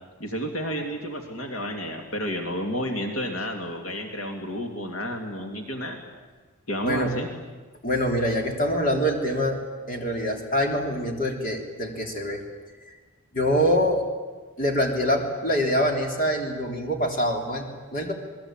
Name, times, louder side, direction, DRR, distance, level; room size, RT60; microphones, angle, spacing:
voice 1, 0.2-6.0 6.7-7.3, equal, 65° left, 3 dB, 2.6 m, -31 dB
voice 2, 7.8-9.6 9.9-12.4 12.9-13.0 13.3-14.1 14.6-18.1, equal, 40° left, 2 dB, 3.5 m, -25 dB
27.5 x 20.5 x 9.0 m, 1.3 s
head